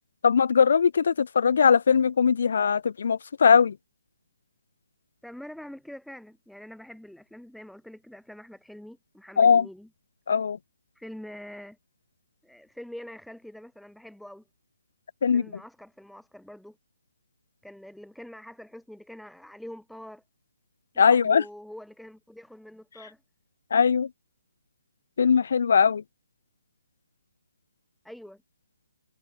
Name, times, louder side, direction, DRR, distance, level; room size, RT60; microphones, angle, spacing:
voice 1, 0.2-3.8 9.4-9.7 10.3-10.6 15.2-15.4 21.0-21.4 23.7-24.1 25.2-26.0, left 6 dB, 55° left, 0.4 m, -20 dB
voice 2, 5.2-9.9 10.9-11.8 12.4-14.4 15.3-16.8 17.6-20.2 20.9-23.2 28.0-28.4, left 1 dB, ahead, 1.5 m, -45 dB
hypercardioid pair, 170°, 0 cm